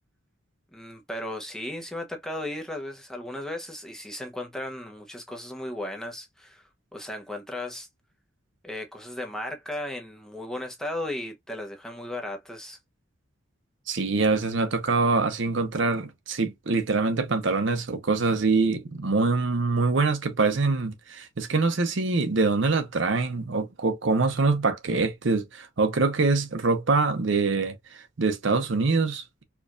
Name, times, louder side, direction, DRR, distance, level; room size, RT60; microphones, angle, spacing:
voice 1, 0.7-6.6 6.9-7.9 8.6-12.8, left 1 dB, 5° left, 0.7 m, -35 dB
voice 2, 13.9-29.4, right 3 dB, 65° right, 0.7 m, -24 dB
4.6 x 2.4 x 2.4 m
head